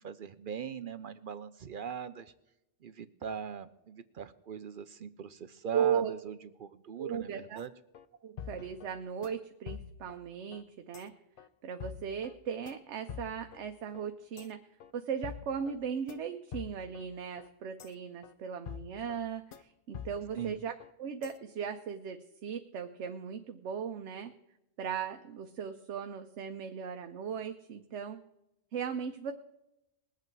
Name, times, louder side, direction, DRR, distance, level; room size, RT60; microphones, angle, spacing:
voice 1, 0.0-2.3 2.8-7.7 20.3-20.6, right 7 dB, 55° right, 14 dB, 0.6 m, -40 dB
voice 2, 5.7-6.1 7.0-7.6 8.2-11.1 11.6-14.6 14.9-20.7 21.0-24.3 24.8-28.2 28.7-29.3, right 7 dB, 75° right, 7 dB, 1.0 m, -37 dB
sound 1, 7.6-7.7 7.9-8.1 8.4-8.9 9.2-9.3 9.7-10.2 10.5-10.6 10.9-11.1 11.4-11.5 11.8-12.3 12.7-12.8 13.1-13.6 13.9-14.1 14.4-14.5 14.8-14.9 15.2-15.8 16.1-16.2 16.5-17.1 17.4-17.5 17.8-17.9 18.2-18.3 18.7-19.2 19.5-19.6 19.9-20.5 20.8-20.9 21.2-21.3, left 8 dB, 55° left, 0.8 m, -45 dB
21.0 x 8.3 x 4.6 m, 0.91 s
omnidirectional pair, 1.2 m